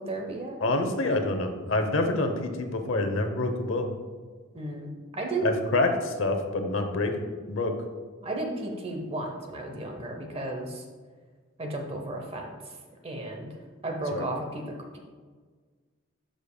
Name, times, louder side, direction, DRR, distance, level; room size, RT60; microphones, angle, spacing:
voice 1, 0.0-0.6 4.5-5.5 8.2-10.8 11.6-12.8 13.0-13.5 13.8-14.6 14.9-15.0, right 2 dB, 30° right, 2 dB, 0.8 m, -34 dB
voice 2, 0.6-3.9 5.4-7.1 7.5-7.7 14.1-14.3, left 2 dB, 65° left, 5 dB, 0.8 m, -27 dB
11.5 x 5.2 x 2.2 m, 1.5 s
head